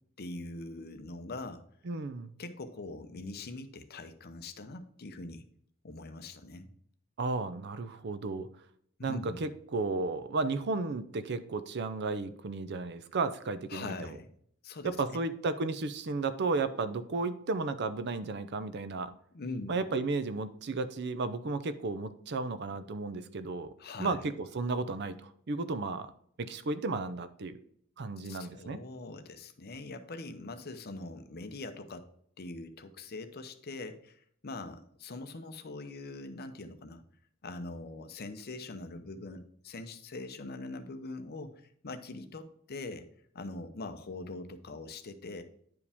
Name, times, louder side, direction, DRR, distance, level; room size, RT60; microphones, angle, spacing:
voice 1, 0.2-1.6 2.4-5.4 5.8-6.7 9.0-9.4 13.7-14.3 14.6-15.2 19.3-19.8 23.8-24.2 28.2-32.1 32.4-37.0 37.4-43.1 43.3-45.4, left 2 dB, 50° left, 8 dB, 0.7 m, -42 dB
voice 2, 1.8-2.4 7.2-8.5 9.0-14.2 14.8-19.1 19.7-23.7 24.0-26.1 26.4-27.6 28.0-28.8, right 3 dB, 55° right, 13 dB, 0.5 m, -33 dB
9.7 x 4.9 x 3.5 m, 0.65 s
head